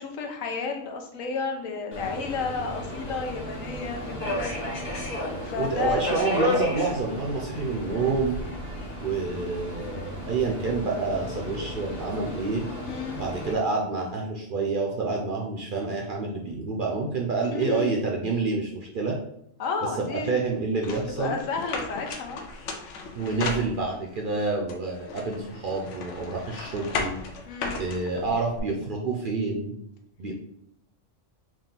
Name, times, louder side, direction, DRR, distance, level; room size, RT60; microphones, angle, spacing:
voice 1, 0.0-4.5 5.3-6.0 12.9-13.2 17.5-17.9 19.6-20.5 20.9-22.4 27.5-27.8, left 4 dB, 90° left, 4 dB, 1.1 m, -32 dB
Subway metro underground, 1.9-13.5, left 1 dB, 35° left, 1.2 m, -33 dB
voice 2, 5.6-8.4 8.9-12.6 13.2-19.2 20.0-21.4 23.1-27.2 27.8-29.7 30.2-30.3, right 4 dB, 60° right, 0 dB, 0.5 m, -28 dB
sound 1, 20.8-24.2 24.7-28.6, left 4 dB, 70° left, 0.9 m, -35 dB
3.7 x 2.5 x 3.9 m, 0.75 s
omnidirectional pair, 1.4 m